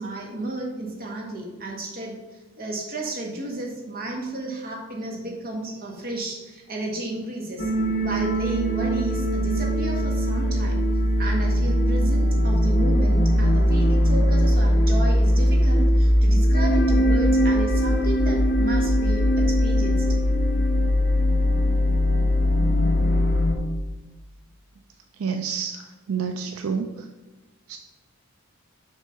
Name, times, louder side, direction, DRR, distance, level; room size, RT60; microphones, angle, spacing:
voice 1, 0.0-2.1 2.6-7.7 8.0-10.8 11.2-20.0, right 2 dB, 45° right, -1 dB, 1.5 m, -32 dB
sound 1, 7.6-23.5, equal, 50° left, 0.8 m, -20 dB
voice 2, 25.2-25.8 26.1-26.9 27.7-27.8, right 6 dB, 75° right, 6 dB, 0.4 m, -28 dB
6.5 x 3.6 x 5.6 m, 1.2 s
head